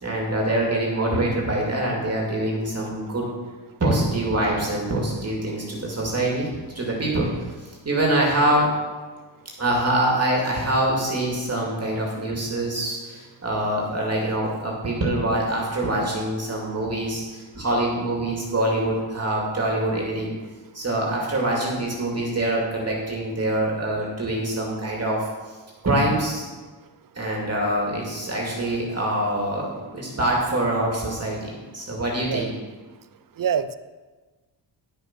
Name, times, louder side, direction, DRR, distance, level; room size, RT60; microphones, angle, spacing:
voice 1, 0.0-3.3 3.8-6.5 6.7-8.7 9.6-20.3 20.7-25.6 25.8-26.5 27.2-32.5, right 1 dB, 35° right, -2 dB, 2.4 m, -25 dB
voice 2, 33.4-33.8, right 8 dB, 50° right, 14 dB, 0.6 m, -25 dB
10.5 x 6.8 x 5.9 m, 1.3 s
wide cardioid pair, 115°, 45 cm